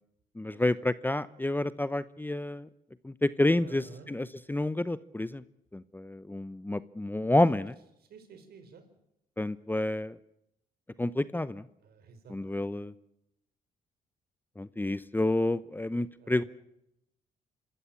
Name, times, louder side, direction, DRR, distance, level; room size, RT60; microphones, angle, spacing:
voice 1, 0.4-2.7 3.0-5.4 5.7-7.7 9.4-10.2 11.0-11.7 12.3-12.9 14.6-16.4, left 1 dB, 10° left, 16 dB, 0.8 m, -29 dB
voice 2, 3.6-4.1 7.4-7.5 8.1-8.9 11.8-12.7 16.2-16.5, right 5 dB, 70° right, 9 dB, 4.3 m, -51 dB
26.0 x 13.5 x 8.6 m, 0.83 s
supercardioid pair, 65°, 17 cm